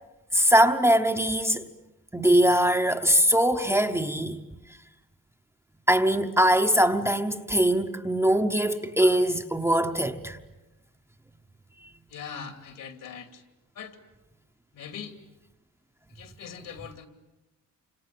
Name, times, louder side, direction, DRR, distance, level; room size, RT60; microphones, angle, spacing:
voice 1, 0.3-1.7 2.1-4.4 5.9-10.4, equal, 10° right, 0.9 m, -22 dB
voice 2, 12.1-13.4 13.8-14.0 14.7-15.1 16.1-17.1, left 7 dB, 70° left, 2.7 m, -41 dB
28.5 x 26.0 x 7.7 m
wide cardioid pair, 175°, 34 cm